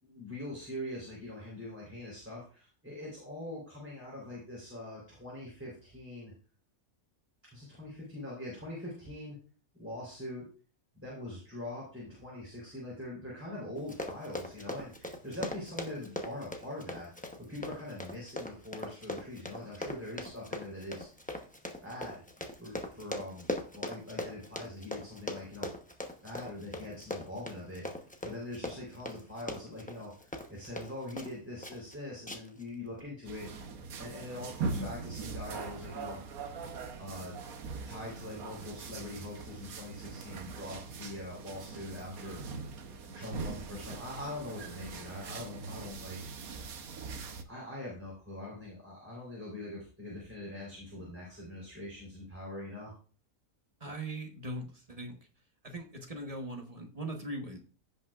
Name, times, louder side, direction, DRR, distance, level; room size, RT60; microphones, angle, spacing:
voice 1, 0.0-6.3 7.5-9.4 9.8-10.5 10.9-17.1 17.5-21.1 21.8-22.2 22.6-25.7 26.2-27.8 28.2-33.7 34.0-36.5 36.9-37.4 37.7-42.7 43.1-46.2 47.4-52.9, left 1 dB, 10° right, -5 dB, 3.7 m, -43 dB
Run, 13.8-31.3 31.6-31.9 32.3-32.6 33.0-33.1, left 1 dB, 5° left, 0.7 m, -40 dB
sound 1, 33.2-47.4, right 4 dB, 85° right, 1.4 m, -41 dB
voice 2, 53.8-55.2 55.6-57.6, right 1 dB, 25° right, 3 dB, 1.2 m, -40 dB
16.0 x 5.4 x 2.4 m, 0.39 s
omnidirectional pair, 1.5 m